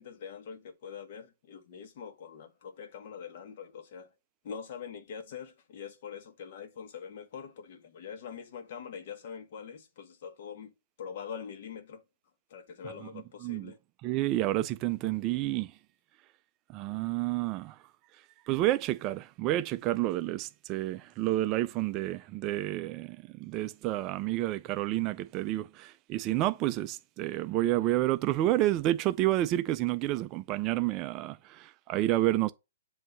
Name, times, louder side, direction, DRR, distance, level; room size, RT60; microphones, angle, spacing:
voice 1, 0.0-4.1 4.4-10.7 11.0-12.0 12.5-13.8, left 7 dB, 50° left, 1.2 m, -44 dB
voice 2, 13.4-13.7 14.0-15.7 16.7-17.8 18.5-32.5, right 15 dB, 25° right, 0.3 m, -29 dB
7.7 x 2.7 x 5.3 m
hypercardioid pair, 150°, 0 cm